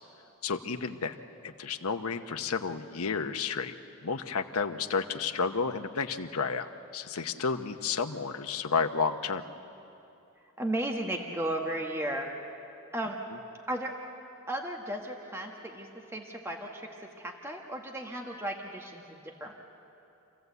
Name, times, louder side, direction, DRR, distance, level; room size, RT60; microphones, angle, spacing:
voice 1, 0.4-1.2 1.4-3.7 4.0-9.4, left 5 dB, 85° left, 7 dB, 0.9 m, -31 dB
voice 2, 10.6-12.3 12.9-13.2 13.7-13.9 14.5-19.6, right 1 dB, 10° right, 1 dB, 1.3 m, -35 dB
27.5 x 15.0 x 8.1 m, 2.8 s
head